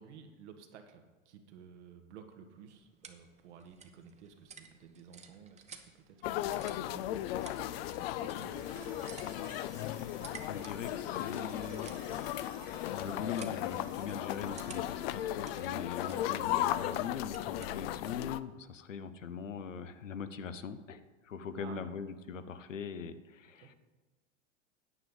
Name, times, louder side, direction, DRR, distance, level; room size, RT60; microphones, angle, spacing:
voice 1, 0.0-8.9 16.1-16.2 21.6-21.9 23.6-23.7, right 7 dB, 65° right, 6 dB, 1.6 m, -54 dB
sound 1, 2.4-18.3, right 6 dB, 20° right, 1.0 m, -56 dB
sound 2, 6.2-18.4, left 13 dB, 55° left, 0.5 m, -36 dB
sound 3, 8.4-16.5 18.6-18.7, right 7 dB, 85° right, 0.8 m, -54 dB
voice 2, 9.7-11.9 12.9-23.7, left 6 dB, 90° left, 11 dB, 0.9 m, -41 dB
9.8 x 5.3 x 7.9 m, 1.2 s
hypercardioid pair, 105°, 37 cm